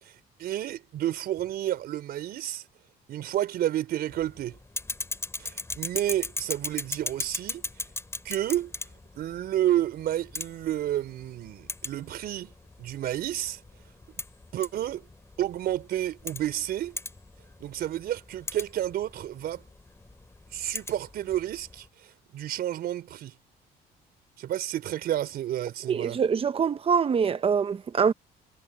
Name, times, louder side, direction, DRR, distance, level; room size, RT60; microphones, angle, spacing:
voice 1, 0.0-2.6 3.1-4.6 5.4-7.6 8.2-8.7 9.2-12.5 12.8-13.6 14.5-15.1 15.4-17.0 17.6-19.6 20.5-23.4 24.4-26.2, right 12 dB, 65° right, 4.4 m, -30 dB
sound 1, 4.1-21.9, left 2 dB, 15° left, 7.2 m, -39 dB
voice 2, 25.9-28.1, right 6 dB, 35° right, 1.0 m, -24 dB
cardioid pair, 110°, 17 cm